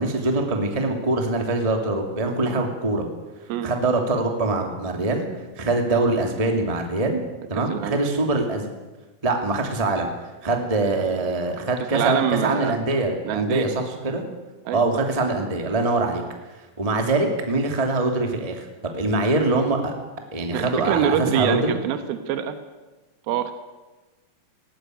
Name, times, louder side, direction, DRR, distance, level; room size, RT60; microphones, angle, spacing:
voice 1, 0.0-3.1 3.6-5.2 5.6-7.2 7.5-8.7 9.2-10.1 10.4-14.2 14.7-16.2 16.8-18.7 18.9-19.9 20.3-21.8, right 2 dB, 10° right, 3 dB, 2.1 m, -23 dB
voice 2, 7.5-8.0 11.9-12.7 13.2-13.7 14.7-14.8 20.5-22.5 23.3-23.5, right 9 dB, 85° right, 9 dB, 3.1 m, -25 dB
19.0 x 18.0 x 9.3 m, 1.2 s
omnidirectional pair, 4.2 m